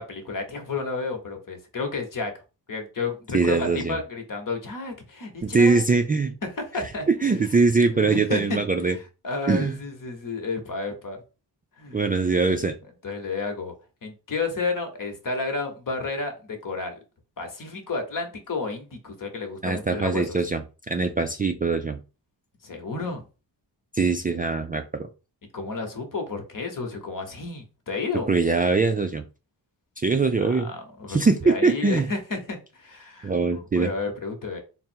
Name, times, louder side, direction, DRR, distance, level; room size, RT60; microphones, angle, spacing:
voice 1, 0.0-2.3 2.7-5.8 6.4-7.1 7.9-8.6 9.2-11.2 11.8-12.0 13.0-13.7 14.0-17.0 17.4-20.4 22.6-23.2 25.5-28.3 30.4-31.2 31.4-34.6, left 3 dB, 50° left, 5 dB, 1.1 m, -31 dB
voice 2, 3.3-4.0 5.4-6.3 7.1-9.0 9.5-9.7 11.9-12.8 19.6-20.6 20.9-22.0 23.9-25.1 28.3-29.2 30.0-30.7 31.1-32.1 33.2-33.9, right 4 dB, 20° right, 6 dB, 0.3 m, -22 dB
3.6 x 2.1 x 4.4 m, 0.32 s
cardioid pair, 70°, 42 cm